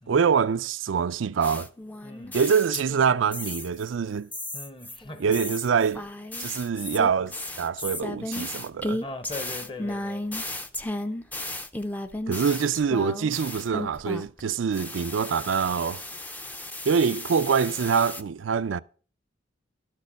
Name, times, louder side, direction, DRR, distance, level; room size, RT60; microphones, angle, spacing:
voice 1, 0.1-1.7 2.3-4.3 5.2-6.0 6.4-9.0 12.3-16.0 16.9-18.8, right 6 dB, 85° right, 0.4 m, -25 dB
sound 1, 1.4-3.0 3.3-3.9 4.3-14.4 14.7-18.2, left 1 dB, 10° left, 0.5 m, -35 dB
voice 2, 2.0-2.4 4.5-5.4 9.0-10.3, left 2 dB, 25° left, 0.8 m, -39 dB
12.5 x 6.6 x 5.2 m
head